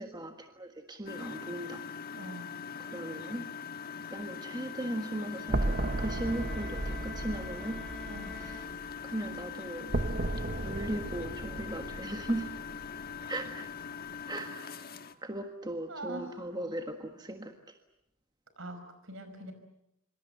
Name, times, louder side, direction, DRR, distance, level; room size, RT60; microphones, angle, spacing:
voice 1, 0.0-1.8 2.8-3.5 4.1-7.8 8.3-8.7 9.0-10.0 10.5-12.5 13.2-13.7 14.3-15.0 15.2-17.7, right 1 dB, 20° right, 5 dB, 1.5 m, -38 dB
Engine, 1.1-15.1, left 6 dB, 45° left, 1.4 m, -42 dB
voice 2, 2.1-2.5 8.1-8.3 15.9-16.5 18.6-19.5, right 1 dB, 65° right, 8 dB, 5.2 m, -43 dB
sound 1, 5.5-9.3, left 1 dB, 5° left, 1.3 m, -49 dB
sound 2, 5.5-9.5 9.9-13.3, right 2 dB, 45° right, 1.0 m, -35 dB
25.5 x 25.5 x 7.9 m, 0.83 s
head